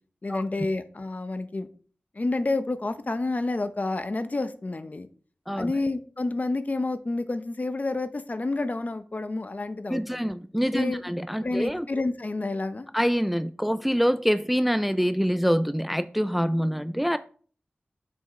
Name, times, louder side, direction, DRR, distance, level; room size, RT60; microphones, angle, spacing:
voice 1, 0.2-1.7 2.2-5.1 5.6-10.3 10.7-11.0 11.4-12.9, left 2 dB, 45° left, 11 dB, 0.7 m, -29 dB
voice 2, 9.9-11.9 12.9-17.2, equal, 5° right, 13 dB, 0.3 m, -25 dB
6.4 x 5.0 x 4.2 m, 0.43 s
wide cardioid pair, 60°, 4 cm